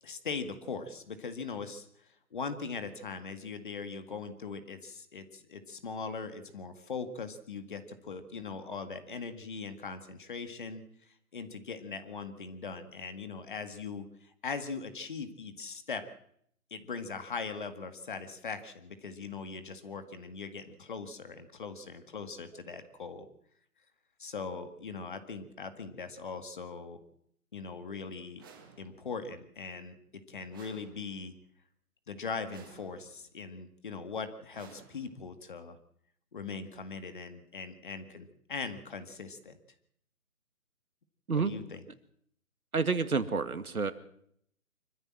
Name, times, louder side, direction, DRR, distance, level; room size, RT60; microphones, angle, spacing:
voice 1, 0.0-1.9 2.3-10.8 11.3-16.0 16.7-23.3 24.2-27.0 27.5-28.4 28.8-30.0 30.3-31.3 32.1-35.8 36.3-39.6 41.3-41.8, left 5 dB, 35° left, 9 dB, 1.9 m, -40 dB
sound 1, 28.4-29.2 30.5-31.4 32.5-33.3 34.5-35.4, right 5 dB, 15° right, 1.7 m, -56 dB
voice 2, 42.7-43.9, right 4 dB, 80° right, 10 dB, 2.3 m, -29 dB
25.5 x 14.0 x 7.6 m, 0.70 s
figure-of-eight pair, 165°, 44 cm